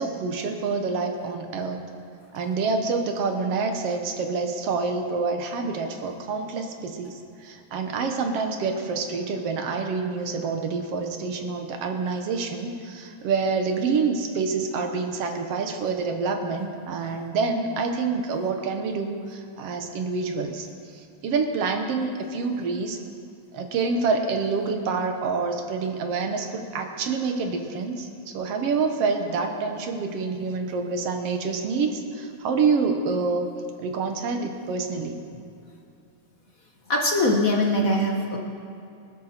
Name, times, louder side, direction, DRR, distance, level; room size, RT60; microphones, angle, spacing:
voice 1, 0.0-1.8 2.3-20.7 20.9-23.0 23.5-33.5 33.8-35.2, right 4 dB, 60° right, 5 dB, 1.9 m, -27 dB
voice 2, 36.9-38.4, left 1 dB, 55° left, 1 dB, 0.9 m, -22 dB
24.5 x 9.4 x 4.4 m, 2.6 s
omnidirectional pair, 3.4 m